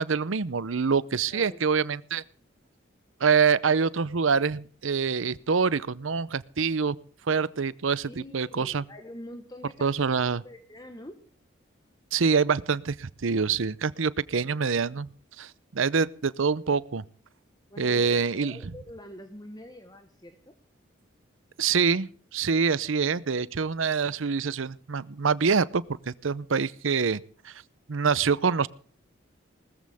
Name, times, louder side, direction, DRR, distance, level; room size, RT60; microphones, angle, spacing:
voice 1, 0.0-2.2 3.2-7.0 7.3-8.8 9.8-10.4 12.1-15.1 15.4-17.0 17.8-18.6 21.6-27.2 27.4-27.5 27.9-28.7, right 5 dB, 80° right, 19 dB, 0.7 m, -25 dB
voice 2, 1.3-1.6 8.0-10.2 10.4-11.2 17.7-20.5, equal, 20° left, 7 dB, 1.3 m, -45 dB
19.5 x 14.0 x 3.6 m, 0.44 s
head